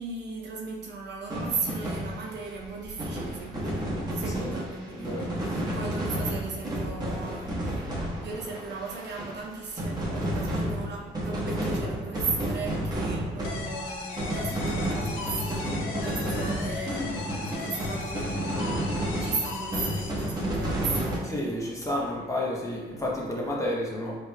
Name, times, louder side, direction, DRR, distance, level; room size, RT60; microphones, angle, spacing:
voice 1, 0.0-18.9 19.2-21.7, right 4 dB, 60° right, -1 dB, 0.8 m, -37 dB
sound 1, 1.3-9.5 9.8-21.2, right 1 dB, 20° right, 1.2 m, -31 dB
voice 2, 4.9-5.3 5.7-5.8 16.0-16.2 21.2-24.2, left 1 dB, 15° left, -3 dB, 0.9 m, -31 dB
sound 2, 13.4-20.8, left 4 dB, 85° left, 0.6 m, -38 dB
4.9 x 3.2 x 2.3 m, 1.3 s
cardioid pair, 90°, 20 cm